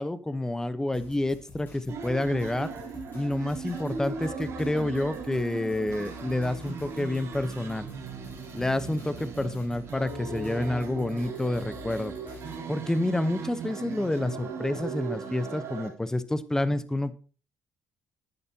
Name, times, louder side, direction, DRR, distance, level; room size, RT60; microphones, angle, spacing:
voice 1, 0.0-2.7 3.1-7.9 8.5-12.1 12.7-17.1, left 1 dB, 10° left, 13 dB, 1.0 m, -29 dB
sound 1, 0.9-12.6, left 3 dB, 35° left, 5.5 m, -49 dB
sound 2, 1.9-15.9, right 5 dB, 60° right, 3.5 m, -38 dB
11.0 x 10.0 x 2.9 m, 0.37 s
cardioid pair, 90°, 5 cm